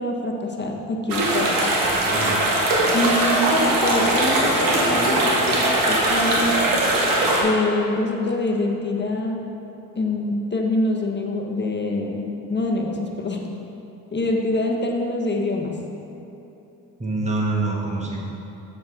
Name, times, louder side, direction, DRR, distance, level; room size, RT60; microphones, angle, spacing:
voice 1, 0.0-1.5 2.9-6.6 7.4-9.5 9.9-13.5 14.1-15.8, left 2 dB, 30° left, 1 dB, 1.2 m, -25 dB
sound 1, 1.1-7.4, right 1 dB, 80° right, 1.4 m, -20 dB
voice 2, 1.7-2.4 17.0-18.2, right 2 dB, 20° right, -2 dB, 1.5 m, -26 dB
7.7 x 7.1 x 3.8 m, 3.0 s
cardioid pair, 65°, 34 cm